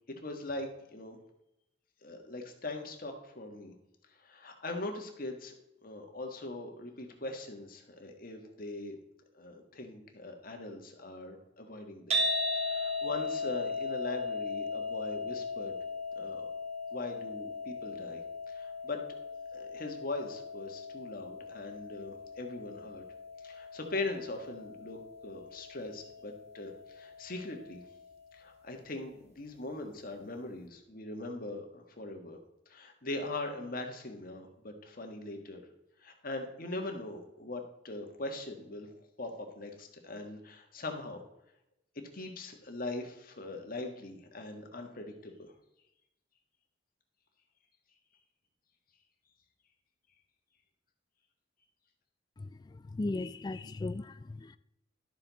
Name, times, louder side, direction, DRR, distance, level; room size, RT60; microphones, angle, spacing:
voice 1, 0.2-1.2 2.0-3.7 4.2-5.5 5.8-9.0 9.3-12.2 12.5-15.8 16.1-16.5 16.9-18.2 18.5-19.0 19.5-23.0 23.4-25.0 25.2-27.8 28.3-32.4 32.7-35.6 36.0-38.9 39.2-41.2 42.1-45.5, left 2 dB, 50° left, 1.5 m, -41 dB
sound 1, 12.1-28.3, left 2 dB, 35° right, 1.5 m, -38 dB
voice 2, 52.4-54.6, left 2 dB, 20° left, 0.3 m, -37 dB
12.0 x 6.9 x 4.0 m
head